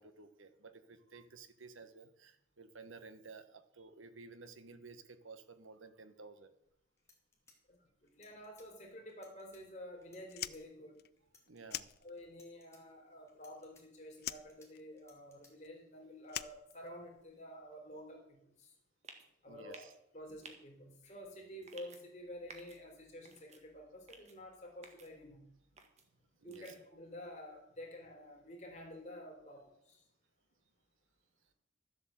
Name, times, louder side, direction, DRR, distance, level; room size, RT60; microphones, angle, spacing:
voice 1, 0.0-6.5 11.5-11.9 19.5-19.9 26.4-26.7, right 4 dB, 80° right, 10 dB, 1.3 m, -54 dB
sound 1, 6.6-6.7 7.0-8.7 9.1-9.6 10.0-10.6 11.2-11.8 12.2-12.8 13.3-14.7 15.0-15.5, left 3 dB, 15° left, 2.4 m, -65 dB
voice 2, 7.7-11.0 12.0-18.7 19.4-19.9 20.1-25.5 26.4-30.0, equal, 35° left, 1 dB, 3.6 m, -50 dB
Fire, 10.2-12.6 12.8-13.8 14.2-17.3, left 13 dB, 50° left, 0.4 m, -45 dB
sound 2, 19.0-19.3 19.7-19.9 20.4-20.5 21.6-22.0 22.5-22.8 23.2-23.6 24.1-24.3 24.8-25.1 25.8-26.0 26.5-26.8, right 4 dB, 35° right, 1.7 m, -54 dB
13.0 x 8.0 x 7.7 m, 0.78 s
head